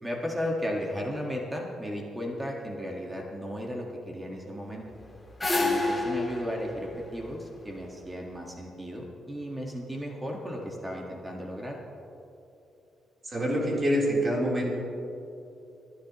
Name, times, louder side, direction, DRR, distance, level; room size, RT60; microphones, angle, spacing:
voice 1, 0.0-4.8 5.6-11.8, equal, 15° right, 0 dB, 1.8 m, -35 dB
sound 1, 4.9-8.1, left 2 dB, 15° left, 2.2 m, -30 dB
voice 2, 13.2-14.7, equal, 30° right, -3 dB, 3.9 m, -26 dB
29.0 x 10.0 x 3.1 m, 2.8 s
cardioid pair, 95°, 0 cm